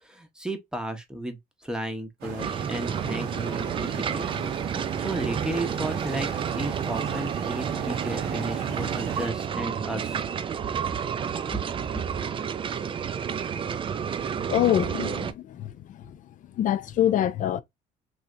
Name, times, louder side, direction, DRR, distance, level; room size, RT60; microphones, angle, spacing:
voice 1, 0.0-4.5 5.0-6.3 6.6-10.2 11.5-11.6 12.1-12.2, right 1 dB, 5° right, 0.7 m, -34 dB
sound 1, 2.2-9.3, right 7 dB, 85° right, 0.9 m, -36 dB
sound 2, 2.4-15.3, right 7 dB, 30° right, 0.3 m, -30 dB
voice 2, 14.5-15.7 16.6-17.6, left 11 dB, 50° left, 0.4 m, -24 dB
3.2 x 2.8 x 2.4 m
cardioid pair, 110°, 17 cm